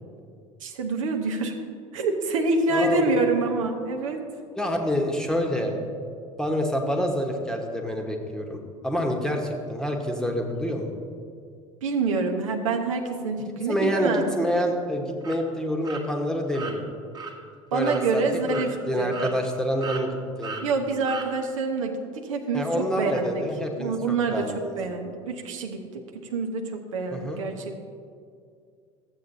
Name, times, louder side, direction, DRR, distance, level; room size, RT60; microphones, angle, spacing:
voice 1, 0.6-1.5 1.9-4.2 11.8-14.3 17.7-19.2 20.6-22.6 23.0-23.4 23.8-25.8 26.3-27.8, right 3 dB, 65° right, 3 dB, 0.9 m, -26 dB
voice 2, 2.7-3.2 4.5-5.8 6.4-10.9 13.7-16.9 17.7-18.2 18.5-18.6 18.9-20.6 22.5-24.7 27.1-27.4, equal, 5° left, 2 dB, 1.1 m, -27 dB
sound 1, 15.2-15.4 15.8-16.0 16.5-16.7 17.1-17.3 17.8-18.0 18.5-18.7 19.1-19.6 19.8-20.0 20.4-20.6 21.1-21.3, right 5 dB, 20° right, 1.2 m, -36 dB
14.0 x 8.0 x 2.7 m, 2.3 s
figure-of-eight pair, 70°, 18 cm